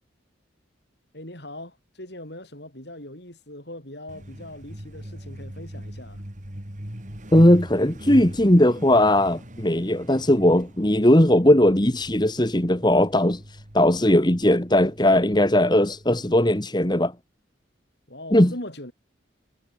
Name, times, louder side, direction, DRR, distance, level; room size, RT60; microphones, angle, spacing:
voice 1, 1.1-6.3 18.1-18.9, left 1 dB, 55° left, 7.7 m, -40 dB
Truck, 4.1-16.4, equal, 40° right, 3.2 m, -40 dB
voice 2, 7.3-13.4 13.7-17.1 18.3-18.5, left 1 dB, 20° left, 1.6 m, -18 dB
head